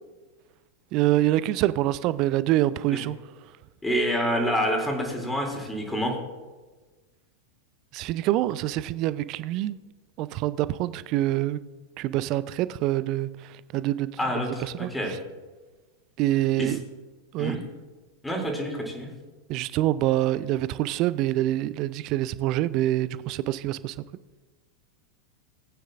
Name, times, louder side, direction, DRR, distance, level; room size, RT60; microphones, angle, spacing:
voice 1, 0.9-3.2 7.9-9.8 10.2-11.6 12.0-14.1 14.6-15.2 16.2-16.8 17.3-17.6 19.5-23.9, right 14 dB, 45° right, 0.4 m, -26 dB
voice 2, 3.8-6.1 14.2-15.1 16.6-16.7 17.4-17.6 18.2-19.1, equal, 5° left, 2.8 m, -27 dB
20.0 x 9.3 x 2.5 m
figure-of-eight pair, 90°, 0 cm